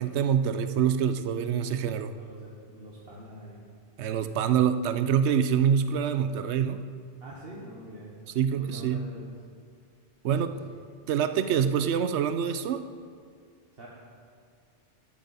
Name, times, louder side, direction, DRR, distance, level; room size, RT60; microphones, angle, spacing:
voice 1, 0.0-2.1 4.0-6.9 8.3-9.1 10.2-10.5 11.1-12.8, right 8 dB, 75° right, 11 dB, 0.9 m, -25 dB
voice 2, 2.2-3.6 7.2-8.1 8.6-9.3 10.2-10.8 13.7-13.9, right 1 dB, 55° right, -5 dB, 1.5 m, -45 dB
13.0 x 8.4 x 4.1 m, 2.1 s
omnidirectional pair, 1.2 m